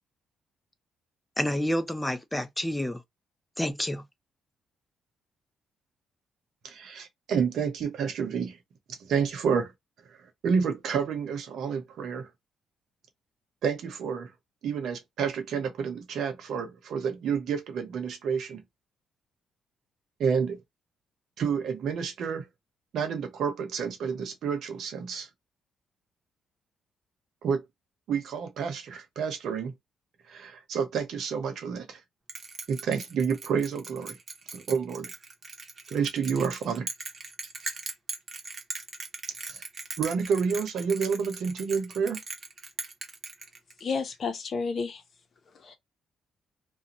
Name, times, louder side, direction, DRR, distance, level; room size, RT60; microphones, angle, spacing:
voice 1, 1.4-3.0 3.6-4.1, left 1 dB, 10° left, 0.5 m, -29 dB
voice 2, 6.6-8.6 9.0-9.7 10.4-12.3 13.6-14.3 14.6-18.6 20.2-20.6 21.4-22.4 22.9-25.3 27.4-27.6 28.1-29.7 30.3-32.0 32.7-34.2 34.5-35.1 35.9-36.9 39.4-39.6 40.0-42.2, right 6 dB, 70° right, 0.9 m, -29 dB
Bell, 32.3-43.9, right 3 dB, 40° right, 0.9 m, -39 dB
voice 3, 43.8-45.0 45.6-45.8, left 5 dB, 50° left, 0.8 m, -31 dB
2.6 x 2.3 x 2.9 m
cardioid pair, 90°, 0 cm